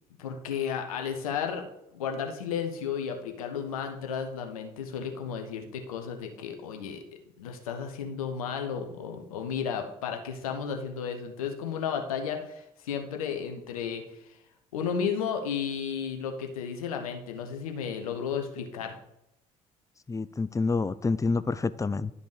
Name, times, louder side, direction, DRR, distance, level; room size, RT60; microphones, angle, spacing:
voice 1, 0.2-1.7 1.9-7.0 7.4-14.2 14.7-18.9, left 7 dB, 85° left, 5 dB, 1.0 m, -33 dB
voice 2, 20.1-22.1, left 3 dB, 15° left, 16 dB, 0.5 m, -28 dB
11.0 x 5.2 x 4.9 m, 0.82 s
hypercardioid pair, 45°, 18 cm